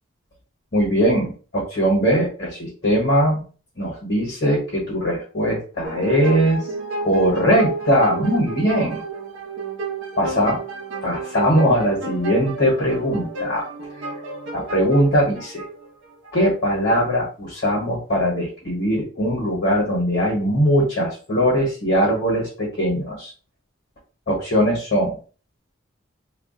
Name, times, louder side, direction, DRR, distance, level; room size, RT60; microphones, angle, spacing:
voice 1, 0.7-3.4 3.8-6.6 7.0-9.0 10.2-10.6 11.0-13.6 14.5-15.6 16.3-23.3 24.3-25.2, equal, 50° left, -3 dB, 1.1 m, -20 dB
sound 1, 5.8-16.3, right 3 dB, 70° right, 0.7 m, -32 dB
2.3 x 2.1 x 3.7 m, 0.38 s
head